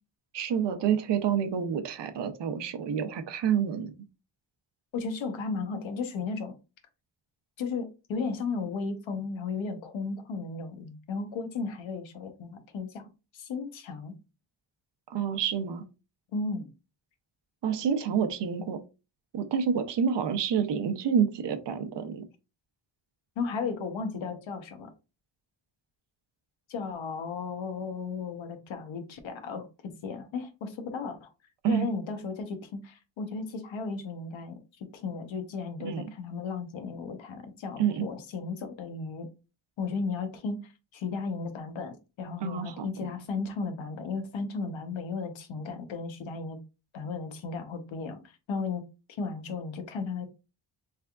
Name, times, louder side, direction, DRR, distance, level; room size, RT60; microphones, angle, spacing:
voice 1, 0.3-3.9 15.1-15.8 17.6-18.8 19.3-22.3 31.6-31.9 35.8-36.0 37.8-38.1 42.4-42.9, right 7 dB, 65° right, 9 dB, 0.6 m, -28 dB
voice 2, 4.9-6.6 7.6-13.1 13.3-14.1 16.3-16.7 23.4-24.9 26.7-29.7 30.0-31.3 31.7-39.3 39.8-46.6 46.9-48.8 49.1-50.3, left 4 dB, 75° left, 7 dB, 0.9 m, -35 dB
3.4 x 3.4 x 2.2 m, 0.29 s
wide cardioid pair, 155°, 47 cm